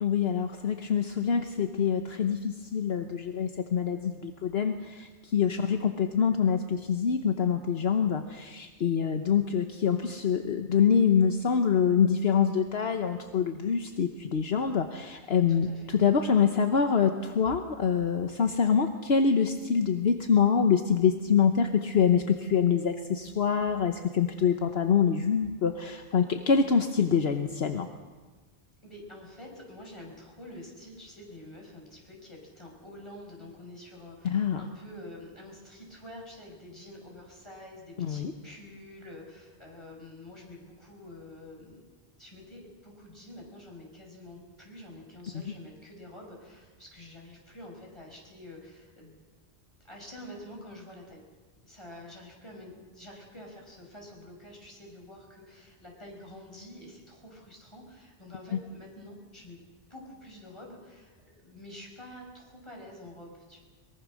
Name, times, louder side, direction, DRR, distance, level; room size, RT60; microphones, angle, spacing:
voice 1, 0.0-27.9 34.2-34.6 38.0-38.3, left 7 dB, 70° left, 6 dB, 1.3 m, -25 dB
voice 2, 5.5-5.9 15.5-15.9 28.8-41.8 42.2-49.2 49.8-51.2 51.6-59.6 59.9-63.6, left 1 dB, 25° left, -1 dB, 5.8 m, -47 dB
23.0 x 22.0 x 6.4 m, 1.3 s
omnidirectional pair, 1.1 m